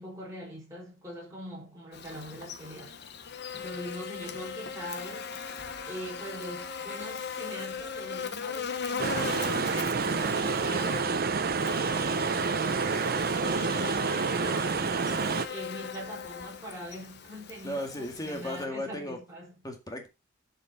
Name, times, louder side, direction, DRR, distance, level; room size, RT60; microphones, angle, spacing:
voice 1, 0.0-3.0 3.5-5.3 5.9-9.3 9.7-19.5, equal, 15° right, 5.5 m, -43 dB
Buzz, 1.9-18.7, left 6 dB, 60° left, 0.9 m, -39 dB
sound 1, 9.0-15.5, right 5 dB, 50° right, 0.7 m, -28 dB
voice 2, 17.6-19.2 19.6-20.1, left 1 dB, 20° left, 2.0 m, -35 dB
11.5 x 5.3 x 4.1 m
head